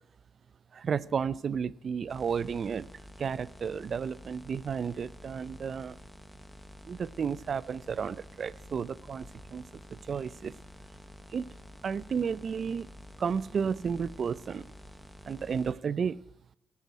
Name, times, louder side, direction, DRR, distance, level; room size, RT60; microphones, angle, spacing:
voice 1, 0.7-2.9 3.2-6.0 6.8-9.3 9.5-9.6 9.9-10.5 11.3-11.5 11.8-12.9 13.2-14.7 15.3-16.2, right 6 dB, 50° right, 19 dB, 0.6 m, -32 dB
sound 1, 2.1-15.7, left 1 dB, 5° left, 1.1 m, -50 dB
18.5 x 8.4 x 9.1 m, 0.78 s
cardioid pair, 130°, 0 cm